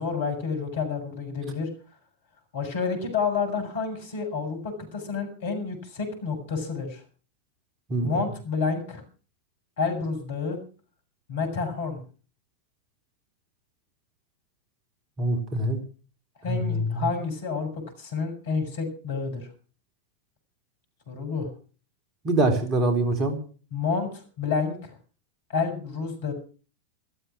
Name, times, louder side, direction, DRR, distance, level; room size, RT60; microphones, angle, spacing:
voice 1, 0.0-1.7 2.5-7.0 8.0-9.0 9.8-10.6 11.3-12.0 16.4-17.7 18.0-19.5 21.1-21.5 23.7-25.0 25.5-26.3, left 5 dB, 55° left, 6 dB, 7.4 m, -29 dB
voice 2, 15.2-15.8 16.5-17.1 22.2-23.4, right 2 dB, 30° right, 5 dB, 3.8 m, -24 dB
15.0 x 13.5 x 6.3 m, 0.40 s
figure-of-eight pair, 90°, 0 cm